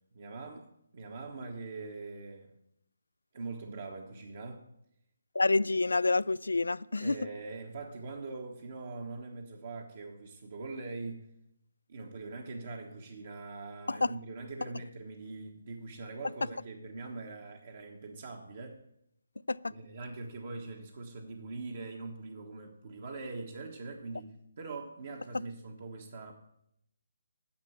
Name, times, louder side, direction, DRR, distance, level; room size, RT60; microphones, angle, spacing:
voice 1, 0.1-0.7 0.9-2.5 3.3-4.6 7.0-11.3 11.9-18.8 19.7-26.3, right 3 dB, 55° right, 1.4 m, -42 dB
voice 2, 5.4-7.2 13.9-14.1 19.5-19.7, left 3 dB, 85° left, 0.3 m, -28 dB
10.5 x 6.9 x 7.5 m
figure-of-eight pair, 155°, 0 cm